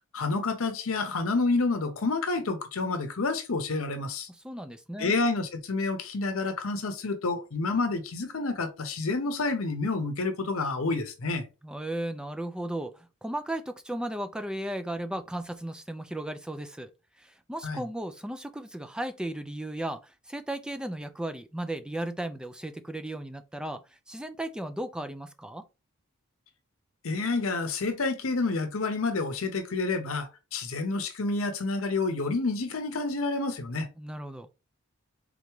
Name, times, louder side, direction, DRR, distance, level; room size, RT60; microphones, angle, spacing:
voice 1, 0.1-4.3 5.0-11.4 17.6-17.8 27.0-33.9, left 3 dB, 75° left, 0.7 m, -29 dB
voice 2, 4.3-5.1 11.6-16.9 17.2-25.6 34.0-34.5, right 1 dB, 5° right, 0.3 m, -35 dB
3.8 x 3.4 x 3.1 m
head